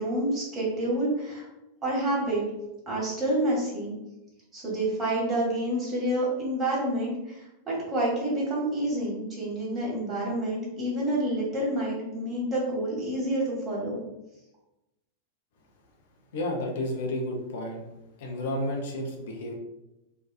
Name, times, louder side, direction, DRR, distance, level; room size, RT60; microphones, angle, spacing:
voice 1, 0.0-1.5 1.8-2.4 2.9-3.9 4.5-14.0, right 1 dB, 25° right, -5 dB, 1.1 m, -28 dB
voice 2, 16.3-17.8 18.2-19.6, left 1 dB, 55° left, 1 dB, 0.5 m, -31 dB
2.6 x 2.2 x 2.3 m, 0.95 s
figure-of-eight pair, 90°, 0 cm